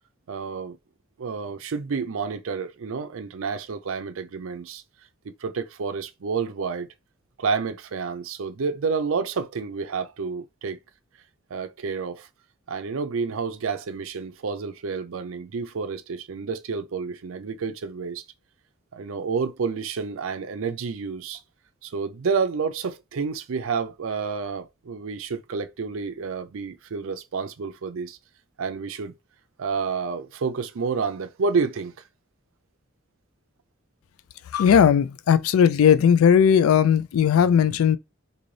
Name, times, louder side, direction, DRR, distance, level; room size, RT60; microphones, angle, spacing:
voice 1, 0.3-0.8 1.2-4.8 5.2-6.9 7.4-10.8 11.5-12.3 12.7-18.2 18.9-21.4 21.8-28.2 28.6-29.1 29.6-31.9, right 5 dB, 70° right, 0.5 m, -29 dB
voice 2, 34.5-38.0, left 8 dB, 85° left, 0.3 m, -17 dB
3.2 x 2.6 x 3.8 m
head